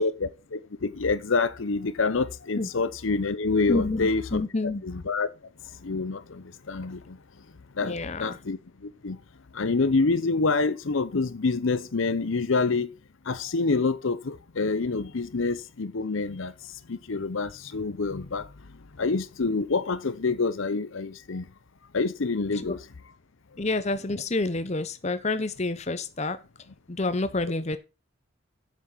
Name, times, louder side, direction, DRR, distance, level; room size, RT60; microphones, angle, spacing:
voice 1, 0.0-4.4 4.8-5.3 5.8-7.2 7.8-9.2 9.5-12.9 13.3-16.5 16.9-18.5 19.0-21.5 21.9-22.8, left 3 dB, 65° left, 0.7 m, -27 dB
voice 2, 3.7-4.8 7.8-8.4 22.5-22.8 23.6-26.4 26.9-27.8, left 2 dB, 30° left, 0.8 m, -28 dB
8.1 x 7.2 x 5.7 m
head